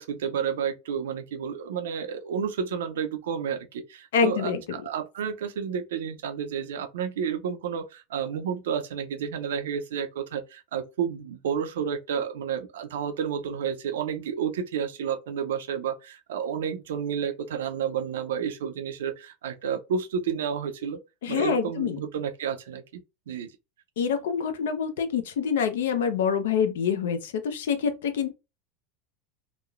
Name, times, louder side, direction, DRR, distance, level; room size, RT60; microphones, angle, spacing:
voice 1, 0.0-21.0 21.3-23.5, right 7 dB, 90° right, 0.4 m, -31 dB
voice 2, 4.1-4.6 21.2-22.0 24.0-28.3, left 7 dB, 90° left, 0.5 m, -26 dB
3.0 x 2.0 x 2.3 m
supercardioid pair, 115°, 0 cm